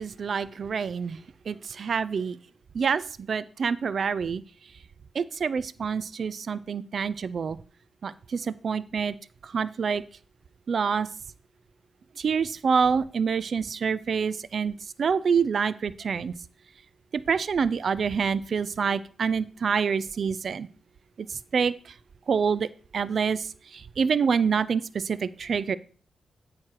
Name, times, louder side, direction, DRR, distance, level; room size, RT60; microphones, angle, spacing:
voice 1, 0.0-2.4 2.7-4.4 5.1-7.6 8.0-9.1 9.4-10.0 10.7-11.1 12.2-16.3 17.1-20.7 21.2-21.9 22.3-22.7 22.9-25.8, right 6 dB, 65° right, 17 dB, 0.4 m, -27 dB
8.6 x 3.2 x 5.8 m, 0.43 s
supercardioid pair, 45°, 0 cm